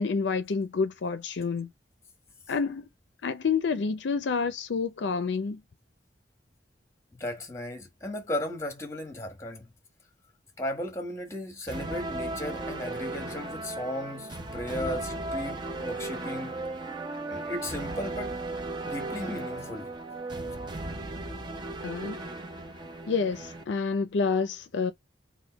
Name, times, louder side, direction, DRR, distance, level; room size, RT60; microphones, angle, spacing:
voice 1, 0.0-1.7 2.5-2.8 3.2-5.6 21.8-22.2 23.1-24.9, left 5 dB, 70° left, 0.5 m, -28 dB
voice 2, 7.1-9.7 10.6-16.5 17.3-18.4 18.8-19.9, left 1 dB, 15° left, 1.2 m, -35 dB
sound 1, 11.7-23.6, right 2 dB, 25° right, 0.7 m, -36 dB
3.5 x 2.5 x 3.8 m
head